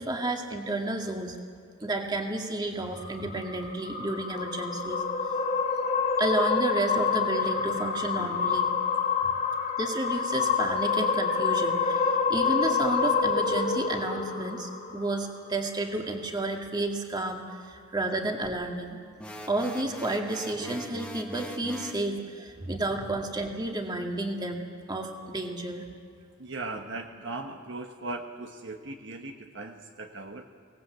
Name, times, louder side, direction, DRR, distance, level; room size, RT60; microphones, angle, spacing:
voice 1, 0.0-1.4 1.8-5.0 6.2-8.7 9.8-19.0 19.5-25.9, right 2 dB, 20° right, 2 dB, 2.1 m, -31 dB
sound 1, 2.9-15.4, left 5 dB, 40° left, 2.4 m, -27 dB
sound 2, 19.2-22.1, equal, 5° left, 1.5 m, -41 dB
voice 2, 26.4-30.5, right 2 dB, 60° right, 4 dB, 1.3 m, -38 dB
24.5 x 19.0 x 8.1 m, 2.3 s
head